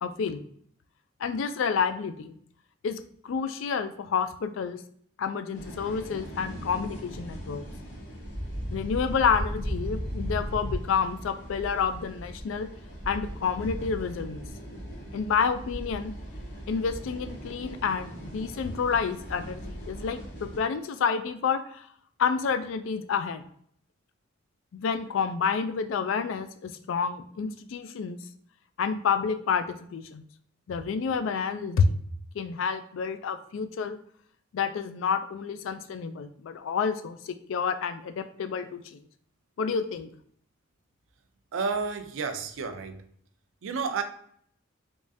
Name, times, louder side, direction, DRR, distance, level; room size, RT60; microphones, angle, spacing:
voice 1, 0.0-0.4 1.2-2.3 2.8-4.8 5.2-7.6 8.7-12.7 13.1-14.4 15.1-16.1 16.7-21.9 22.2-23.4 24.7-28.2 28.8-30.2 30.7-32.0 32.3-34.0 34.5-39.0 39.6-40.1, left 6 dB, 70° left, 10 dB, 0.3 m, -29 dB
sound 1, 5.5-20.6, equal, 45° left, 1.3 m, -37 dB
voice 2, 41.5-43.1 43.6-44.0, right 5 dB, 75° right, 7 dB, 0.4 m, -31 dB
3.5 x 3.1 x 2.6 m, 0.62 s
head